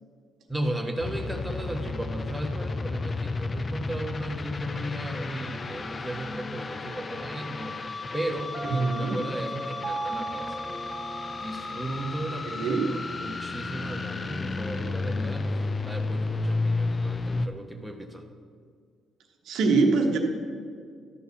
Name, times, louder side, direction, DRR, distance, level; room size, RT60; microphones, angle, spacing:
voice 1, 0.5-10.6 11.4-18.2, right 1 dB, 5° right, 2 dB, 1.1 m, -35 dB
sound 1, 1.0-17.5, left 3 dB, 35° left, 0.5 m, -32 dB
Piano, 8.5-12.4, right 3 dB, 35° right, 1.7 m, -37 dB
voice 2, 8.6-9.2 12.5-13.0 19.4-20.2, right 3 dB, 80° right, 3 dB, 1.2 m, -24 dB
12.0 x 4.7 x 6.9 m, 2.1 s
cardioid pair, 90°, 0 cm